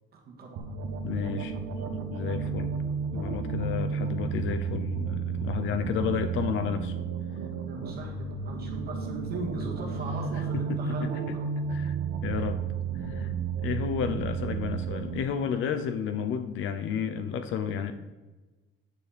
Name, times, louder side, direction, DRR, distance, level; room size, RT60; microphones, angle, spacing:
voice 1, 0.1-0.7 5.6-6.0 7.6-8.1 8.4-11.4, right 3 dB, 50° right, 0 dB, 2.1 m, -38 dB
sound 1, 0.6-15.2, right 6 dB, 90° right, 1.1 m, -32 dB
voice 2, 1.0-1.5 1.9-2.7 3.1-6.9 10.3-11.3 11.7-12.6 12.9-13.3 13.6-17.9, left 8 dB, 80° left, 9 dB, 0.7 m, -32 dB
9.7 x 6.8 x 4.3 m, 1.2 s
cardioid pair, 145°, 20 cm